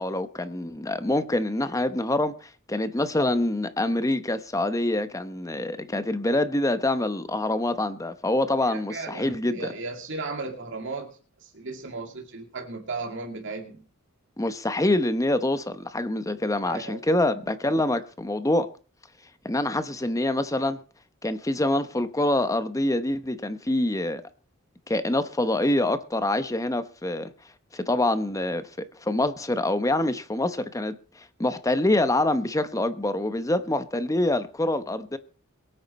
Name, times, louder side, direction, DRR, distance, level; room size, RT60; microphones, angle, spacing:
voice 1, 0.0-9.7 14.4-18.7 19.4-20.8 21.2-24.2 24.9-27.3 27.7-31.0 31.4-35.2, left 1 dB, 15° left, 0.8 m, -25 dB
voice 2, 8.7-13.8 16.6-17.0, right 3 dB, 60° right, 2.2 m, -36 dB
23.0 x 8.8 x 4.2 m
head